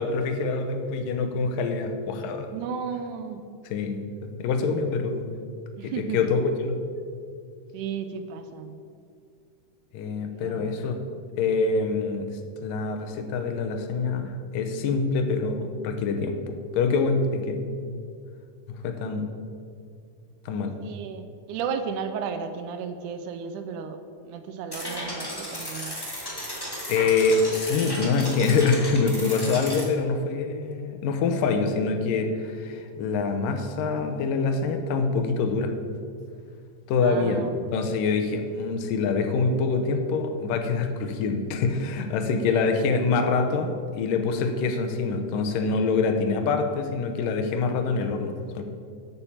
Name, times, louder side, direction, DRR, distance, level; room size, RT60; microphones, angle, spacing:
voice 1, 0.0-2.5 3.7-5.3 5.8-6.8 9.9-11.0 11.4-12.3 12.6-16.4 16.7-17.7 18.8-19.3 20.5-20.7 26.6-35.7 36.9-37.4 37.7-48.6, left 4 dB, 85° left, 6 dB, 2.5 m, -25 dB
voice 2, 2.5-3.4 5.8-6.2 7.7-8.8 10.3-10.8 20.8-24.0 24.3-26.0 37.0-37.6 42.4-42.7, right 6 dB, 80° right, 8 dB, 2.0 m, -34 dB
sound 1, 24.7-29.8, equal, 35° left, 0.3 m, -34 dB
9.0 x 6.8 x 7.1 m, 2.3 s
omnidirectional pair, 3.8 m